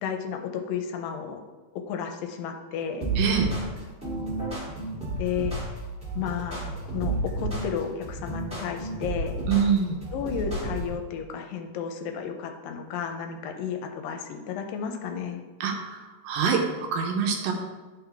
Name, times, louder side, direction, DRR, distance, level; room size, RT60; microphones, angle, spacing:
voice 1, 0.0-1.4 1.9-3.1 5.2-5.6 6.2-9.4 10.1-15.4, left 7 dB, 85° left, 5 dB, 2.3 m, -32 dB
sound 1, 3.0-11.0, right 2 dB, 5° right, 0.5 m, -31 dB
voice 2, 3.2-3.5 9.5-10.0 15.6-16.6 16.9-17.5, right 6 dB, 80° right, 2 dB, 2.4 m, -25 dB
10.5 x 3.7 x 3.4 m, 1.3 s
omnidirectional pair, 4.1 m